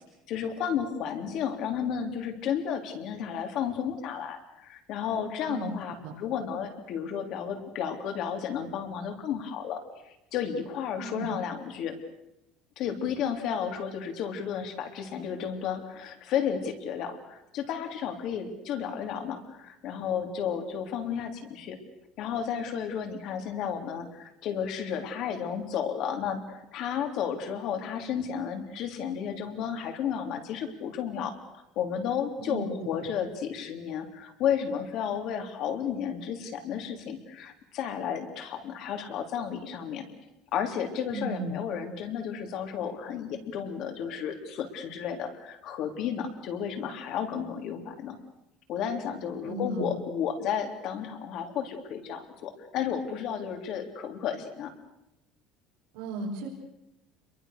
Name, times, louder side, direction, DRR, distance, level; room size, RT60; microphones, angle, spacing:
voice 1, 0.3-12.0 12.8-21.8 22.2-40.0 40.5-48.2 48.7-54.7, left 8 dB, 50° left, 6 dB, 3.4 m, -32 dB
voice 2, 11.0-11.3 32.4-33.1 41.1-41.5 49.4-49.9 55.9-56.5, right 2 dB, 80° right, -4 dB, 5.1 m, -35 dB
29.0 x 22.5 x 6.7 m, 0.89 s
cardioid pair, 165°, 0 cm